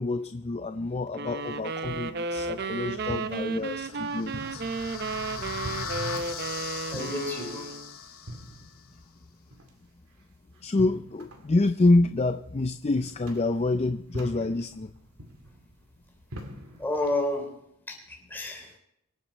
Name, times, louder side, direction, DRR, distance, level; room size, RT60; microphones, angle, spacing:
voice 1, 0.0-4.7 10.6-14.9, left 2 dB, 30° left, 9 dB, 0.4 m, -27 dB
sound 1, 1.1-8.0, right 3 dB, 50° right, 0.6 m, -33 dB
sound 2, 1.3-17.2, equal, 85° right, 2.4 m, -46 dB
sound 3, 3.6-8.7, left 5 dB, 75° left, 2.3 m, -38 dB
voice 2, 6.9-7.6 16.8-17.5 17.9-18.7, left 1 dB, 10° left, 1 dB, 3.2 m, -30 dB
24.5 x 9.0 x 4.4 m, 0.79 s
head